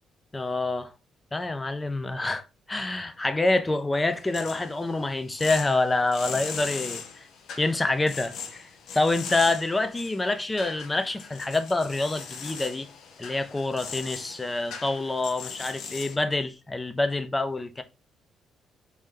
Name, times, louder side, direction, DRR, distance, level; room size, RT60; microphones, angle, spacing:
voice 1, 0.3-0.9 1.3-7.0 7.6-8.7 8.9-12.9 13.2-17.8, left 2 dB, 15° left, 0.4 m, -27 dB
sound 1, 4.2-16.2, left 6 dB, 70° left, 0.7 m, -39 dB
3.1 x 2.7 x 3.7 m
cardioid pair, 105°, 0 cm